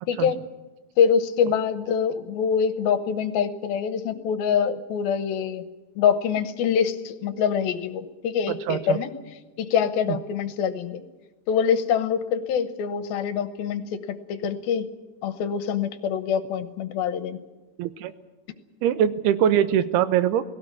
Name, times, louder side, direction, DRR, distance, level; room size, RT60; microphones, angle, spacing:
voice 1, 0.1-0.4 1.0-5.6 6.0-9.1 9.6-11.0 11.5-14.9 15.2-17.4, left 7 dB, 75° left, 12 dB, 2.7 m, -25 dB
voice 2, 8.5-9.0 10.1-10.2 17.8-18.1 18.8-20.4, right 10 dB, 90° right, 14 dB, 2.9 m, -22 dB
18.5 x 17.0 x 9.6 m, 1.2 s
omnidirectional pair, 4.5 m